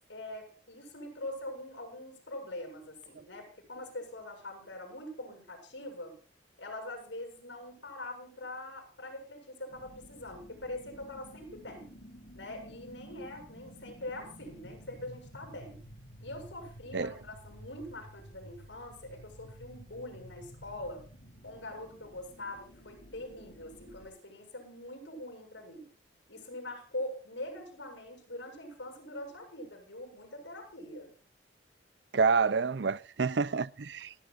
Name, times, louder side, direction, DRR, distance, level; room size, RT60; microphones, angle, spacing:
voice 1, 0.1-6.1 6.6-11.9 12.3-15.8 16.2-21.0 21.4-25.9 26.3-31.1, left 1 dB, 80° left, 7.7 m, -43 dB
sound 1, 9.7-24.1, equal, 60° left, 6.7 m, -52 dB
voice 2, 32.1-34.1, right 5 dB, 70° right, 0.6 m, -28 dB
29.0 x 11.0 x 2.6 m
head